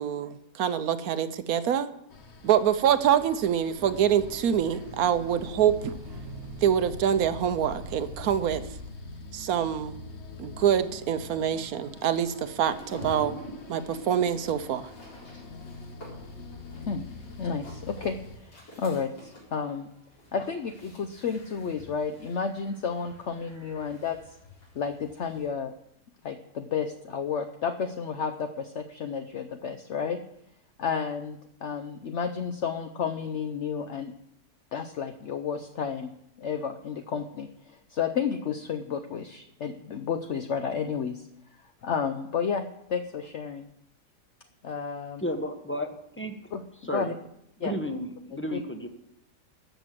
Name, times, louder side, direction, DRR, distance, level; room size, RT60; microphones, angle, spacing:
voice 1, 0.0-1.9 2.4-6.0 6.6-8.6 9.3-10.0 10.4-13.3 13.7-14.9, right 9 dB, 60° right, 12 dB, 1.1 m, -25 dB
sound 1, 2.1-18.4, left 3 dB, 45° left, 1.1 m, -45 dB
sound 2, 3.8-8.9, right 1 dB, 85° right, 2.0 m, -44 dB
sound 3, 12.6-25.4, equal, 85° left, 5.3 m, -47 dB
voice 2, 17.4-19.9 20.3-24.2 24.7-25.7 26.2-30.2 30.8-34.1 34.7-36.1 36.4-41.3 41.8-43.6 44.6-45.2 46.5-46.6 46.9-47.1 47.6-47.7 48.5-48.6, left 6 dB, 60° left, 7 dB, 0.7 m, -31 dB
voice 3, 45.2-46.4 46.8-47.1 47.6-48.9, equal, 10° left, 5 dB, 0.6 m, -32 dB
13.5 x 6.1 x 7.7 m, 0.79 s
omnidirectional pair, 1.9 m